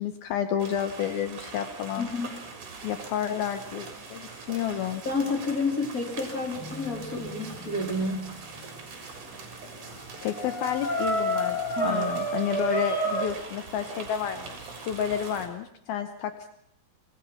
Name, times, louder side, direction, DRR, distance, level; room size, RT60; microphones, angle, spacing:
voice 1, 0.0-2.1 2.8-5.0 10.2-16.5, left 9 dB, 80° left, 8 dB, 2.1 m, -30 dB
sound 1, 0.6-15.5, right 4 dB, 40° right, 4.7 m, -43 dB
voice 2, 2.0-2.3 5.0-8.3 11.8-12.1, left 2 dB, 20° left, 1 dB, 2.9 m, -30 dB
sound 2, 6.2-8.0 9.4-9.5 9.8-9.9 10.3-13.3, right 1 dB, 40° left, 4.8 m, -30 dB
25.5 x 19.0 x 5.9 m, 0.73 s
omnidirectional pair, 5.8 m